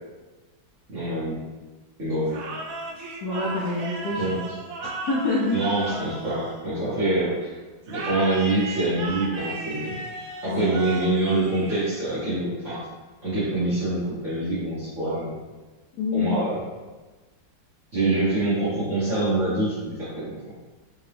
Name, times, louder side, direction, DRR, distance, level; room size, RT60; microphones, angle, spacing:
voice 1, 0.9-1.4 2.0-2.4 4.2-4.4 5.5-7.5 7.9-9.9 10.4-12.8 13.2-15.3 16.1-16.6 17.9-20.4, right 2 dB, 45° right, -12 dB, 1.3 m, -25 dB
sound 1, 2.3-7.1 7.8-12.3, right 3 dB, 80° right, 1.4 m, -36 dB
voice 2, 3.2-4.6 4.8-5.5 10.5-10.8 16.0-16.6, left 3 dB, 70° left, -5 dB, 0.9 m, -27 dB
3.7 x 2.7 x 3.3 m, 1.3 s
omnidirectional pair, 2.0 m